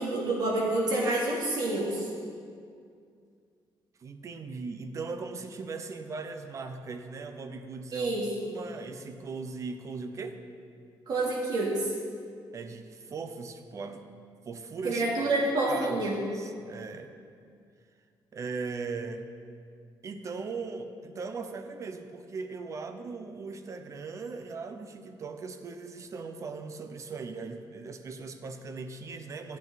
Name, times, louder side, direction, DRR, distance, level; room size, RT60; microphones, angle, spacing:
voice 1, 0.0-2.1 7.9-8.3 11.1-11.9 14.8-16.2, right 2 dB, 55° right, -5 dB, 3.1 m, -28 dB
voice 2, 4.0-8.2 8.5-10.4 12.5-14.0 14.4-15.0 15.4-16.0 16.3-17.1 18.3-19.3 20.0-29.6, right 4 dB, 40° right, 7 dB, 0.7 m, -39 dB
13.5 x 8.5 x 4.1 m, 2.3 s
cardioid pair, 140°, 8 cm